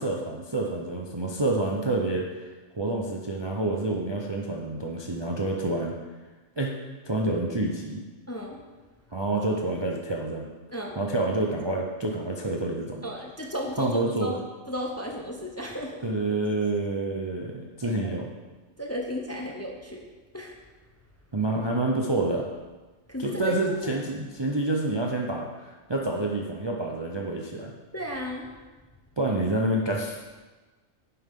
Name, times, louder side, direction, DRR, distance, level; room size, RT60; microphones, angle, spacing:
voice 1, 0.0-5.9 6.6-6.7 7.0-8.0 9.1-10.5 11.0-13.0 13.8-14.4 16.0-18.3 21.3-22.5 23.2-27.7 29.2-30.3, right 2 dB, 25° right, -1 dB, 0.7 m, -28 dB
voice 2, 8.3-8.6 10.7-11.0 13.0-14.4 14.7-16.0 17.8-17.9 18.8-20.0 20.3-20.5 23.1-23.9 27.9-28.5, equal, 15° left, 0 dB, 0.8 m, -34 dB
10.0 x 7.5 x 3.7 m, 1.3 s
omnidirectional pair, 1.4 m